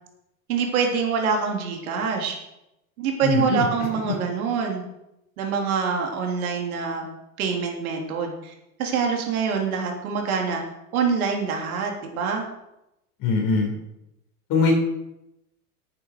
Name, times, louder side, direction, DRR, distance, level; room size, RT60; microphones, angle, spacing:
voice 1, 0.5-2.4 3.0-4.8 5.4-7.1 7.4-8.5 8.8-10.6 10.9-12.5, right 6 dB, 70° right, 2 dB, 3.2 m, -25 dB
voice 2, 3.2-3.7 13.2-13.7 14.5-14.7, left 4 dB, 45° left, 1 dB, 4.1 m, -21 dB
9.6 x 8.9 x 6.5 m, 0.88 s
hypercardioid pair, 100°, 44 cm